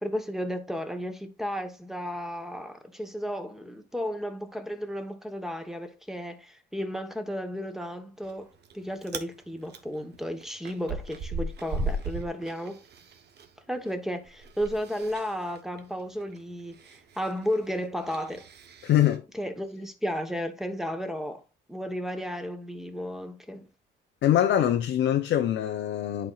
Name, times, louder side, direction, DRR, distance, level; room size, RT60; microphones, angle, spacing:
voice 1, 0.0-8.5 8.7-12.8 13.7-18.5 19.3-21.4 21.7-23.7, equal, ahead, 1.1 m, -33 dB
Chewing mastication, 8.2-8.7 9.0-9.3 9.7-13.5 13.8-19.2, right 2 dB, 55° right, 1.0 m, -37 dB
voice 2, 18.8-19.2 24.2-26.3, left 11 dB, 70° left, 0.7 m, -23 dB
10.5 x 4.4 x 2.4 m
cardioid pair, 115°, 21 cm